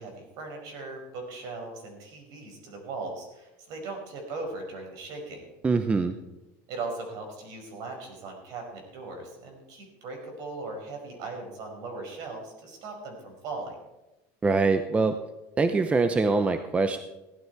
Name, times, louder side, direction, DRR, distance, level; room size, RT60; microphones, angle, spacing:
voice 1, 0.0-5.5 6.7-13.8, right 3 dB, 55° right, 3 dB, 5.2 m, -38 dB
voice 2, 5.6-6.1 14.4-15.2 15.6-17.0, right 4 dB, 15° right, 9 dB, 0.7 m, -23 dB
16.0 x 11.5 x 4.6 m, 0.98 s
supercardioid pair, 130°, 8 cm